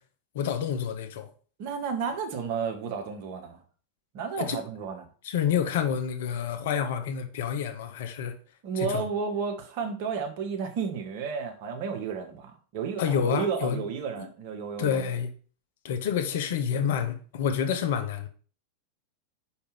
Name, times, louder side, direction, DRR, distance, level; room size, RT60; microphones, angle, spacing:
voice 1, 0.3-1.3 4.4-4.6 5.2-8.4 8.8-9.0 13.0-13.8 14.2-14.3 14.8-15.3 15.8-18.3, left 8 dB, 55° left, 0.9 m, -28 dB
voice 2, 1.6-3.6 4.1-5.0 8.6-15.2, right 6 dB, 45° right, 1.4 m, -32 dB
5.1 x 5.1 x 5.2 m
figure-of-eight pair, 90°, 0 cm